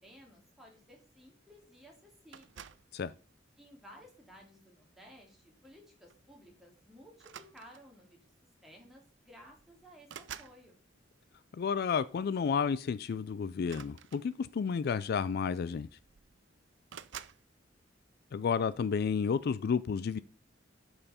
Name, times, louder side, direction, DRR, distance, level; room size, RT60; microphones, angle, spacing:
voice 1, 0.0-2.7 3.6-8.3 8.6-10.8, equal, ahead, 2.7 m, -56 dB
sound 1, 2.3-2.9 3.8-4.1 5.6-5.8 6.1-6.3 7.2-8.0 9.0-9.1 9.4-10.6 13.6-14.7 15.6-15.7 15.9-16.4 16.9-17.4, right 9 dB, 70° right, 0.5 m, -49 dB
voice 2, 11.5-15.9 18.3-20.2, left 6 dB, 55° left, 0.3 m, -31 dB
11.0 x 5.6 x 4.3 m
head